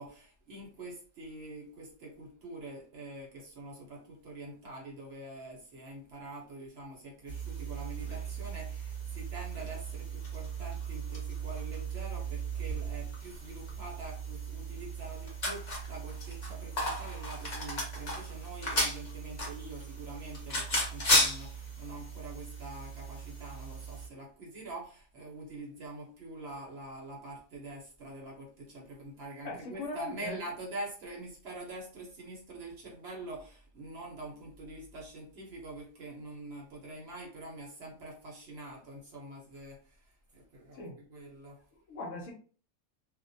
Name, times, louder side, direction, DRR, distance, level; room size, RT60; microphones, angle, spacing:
voice 1, 0.0-41.6, right 2 dB, 55° right, -2 dB, 0.8 m, -45 dB
sound 1, 7.3-24.1, right 1 dB, 40° left, 0.7 m, -35 dB
voice 2, 29.4-30.4 40.7-41.0 41.7-42.3, left 2 dB, 70° left, 1 dB, 0.9 m, -39 dB
2.4 x 2.1 x 2.6 m, 0.40 s
omnidirectional pair, 1.5 m